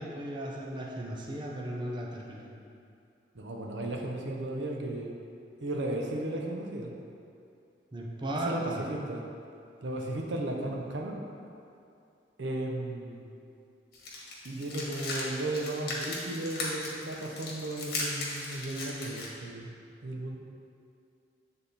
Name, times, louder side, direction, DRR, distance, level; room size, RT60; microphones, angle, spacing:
voice 1, 0.0-2.5 7.9-8.8, right 1 dB, 25° right, -2 dB, 0.6 m, -36 dB
voice 2, 3.3-5.1 5.6-6.9 8.4-9.2 9.8-11.2 12.4-13.3 14.4-19.7 20.0-20.4, right 1 dB, 90° right, 0 dB, 0.7 m, -35 dB
sound 1, 13.9-19.3, left 2 dB, 60° left, 1.3 m, -37 dB
8.0 x 3.5 x 4.1 m, 2.5 s
head